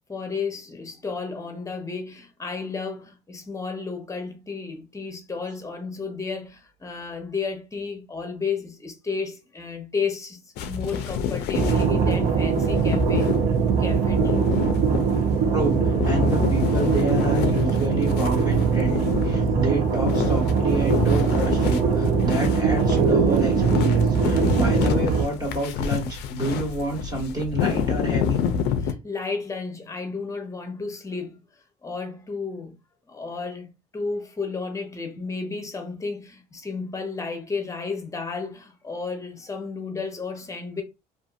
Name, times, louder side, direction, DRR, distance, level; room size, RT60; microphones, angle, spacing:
voice 1, 0.1-10.4 10.7-13.3 13.8-14.4 28.8-31.4 31.8-32.7 33.1-40.8, left 4 dB, 20° left, 0.7 m, -32 dB
sound 1, 10.6-28.9, left 7 dB, 80° left, 0.4 m, -28 dB
sound 2, 11.5-25.2, right 5 dB, 70° right, 0.7 m, -21 dB
voice 2, 15.5-28.4, right 1 dB, 25° right, 1.1 m, -29 dB
2.6 x 2.4 x 2.4 m
cardioid pair, 110°, 17 cm